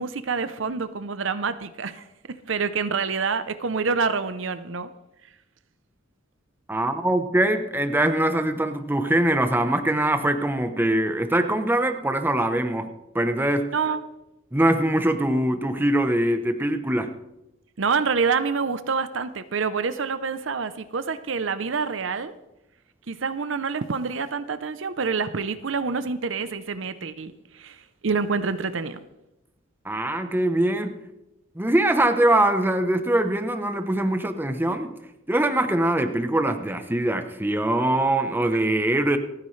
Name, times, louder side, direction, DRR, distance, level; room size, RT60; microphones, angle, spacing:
voice 1, 0.0-4.9 13.7-14.0 17.8-22.3 23.1-27.8 28.0-29.0, right 5 dB, 70° right, 12 dB, 0.7 m, -27 dB
voice 2, 6.7-12.9 13.1-13.7 14.5-17.1 29.8-30.9 31.5-34.9 35.3-39.2, right 1 dB, 10° right, 8 dB, 0.9 m, -22 dB
27.5 x 9.7 x 3.3 m, 0.92 s
head